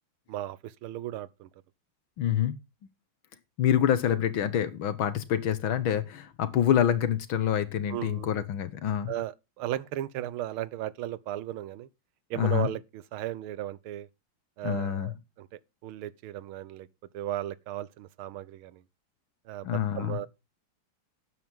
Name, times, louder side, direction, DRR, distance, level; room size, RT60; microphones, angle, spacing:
voice 1, 0.3-1.5 7.9-8.3 9.1-11.9 12.3-14.1 14.6-16.9 17.1-18.8 19.5-20.3, right 13 dB, 90° right, 1.7 m, -36 dB
voice 2, 2.2-2.5 3.6-9.1 12.3-12.7 14.6-15.1 19.6-20.2, left 9 dB, 75° left, 2.0 m, -26 dB
12.5 x 9.3 x 3.6 m
omnidirectional pair, 2.3 m